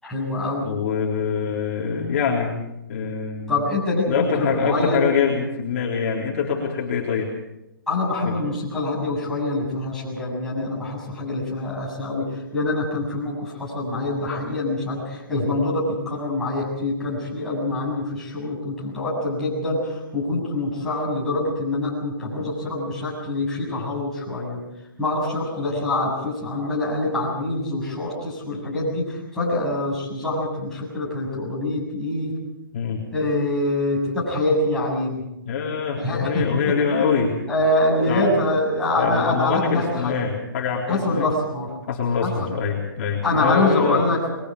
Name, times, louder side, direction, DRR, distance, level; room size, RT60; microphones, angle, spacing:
voice 1, 0.0-0.7 3.5-5.1 7.9-24.6 25.0-32.3 33.1-35.2 35.9-36.5 37.5-40.1 40.9-41.7 42.2-42.5 43.2-44.4, left 2 dB, 5° left, -7 dB, 7.3 m, -25 dB
voice 2, 0.6-2.5 2.9-3.6 4.1-7.3 8.2-8.4 32.7-33.0 35.4-37.4 38.1-38.3 39.0-41.3 41.9-44.0, left 6 dB, 40° left, -3 dB, 3.9 m, -24 dB
27.0 x 22.0 x 5.0 m, 0.91 s
hypercardioid pair, 170°, 12 cm